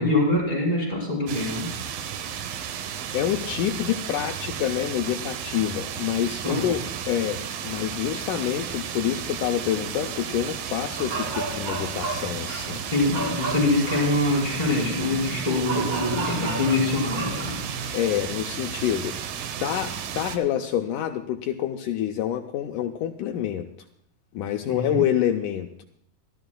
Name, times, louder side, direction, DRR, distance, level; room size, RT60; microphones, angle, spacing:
voice 1, 0.0-1.7 6.4-6.7 12.9-17.7 24.7-25.0, left 2 dB, 10° left, -5 dB, 5.7 m, -24 dB
sound 1, 1.3-20.4, right 8 dB, 70° right, 2.5 m, -33 dB
voice 2, 3.1-12.8 17.9-19.2 19.6-23.7 24.3-25.8, left 11 dB, 85° left, 4 dB, 1.8 m, -27 dB
sound 2, 11.0-17.9, right 2 dB, 35° right, 3.2 m, -34 dB
25.5 x 14.0 x 2.3 m, 0.73 s
omnidirectional pair, 4.5 m